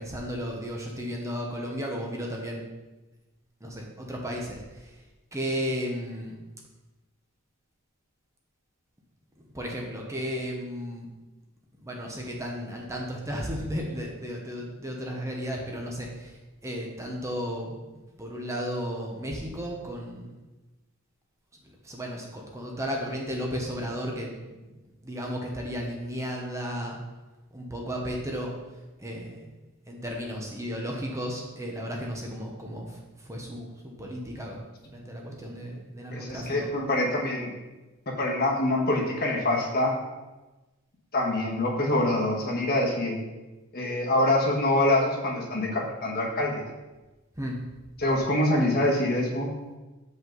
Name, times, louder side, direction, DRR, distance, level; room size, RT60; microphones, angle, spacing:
voice 1, 0.0-2.6 3.6-4.9 5.3-6.4 9.4-11.1 11.8-20.4 21.8-24.7 25.0-27.0 27.5-28.5 29.0-29.5 29.9-34.6 34.9-36.7 47.4-47.6, equal, 15° right, -1 dB, 0.9 m, -34 dB
voice 2, 36.1-37.5 38.1-39.9 41.1-43.1 43.7-46.6 48.0-49.5, left 1 dB, 45° left, -1 dB, 1.3 m, -25 dB
7.2 x 5.4 x 3.9 m, 1.1 s
head